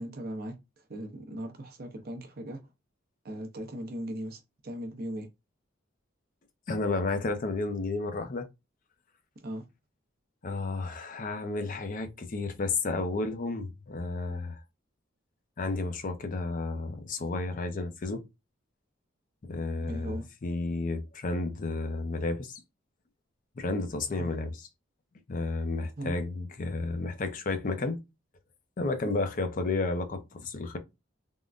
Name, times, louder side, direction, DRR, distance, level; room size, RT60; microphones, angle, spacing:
voice 1, 0.0-2.7 3.2-5.3 9.4-9.7 19.8-20.3 24.1-24.4 26.0-26.2, right 1 dB, 50° right, 0.7 m, -39 dB
voice 2, 6.7-8.5 10.4-14.6 15.6-18.2 19.4-22.6 23.6-24.5 25.3-28.0 28.8-30.8, left 3 dB, 40° left, 0.5 m, -32 dB
3.6 x 2.1 x 2.4 m
head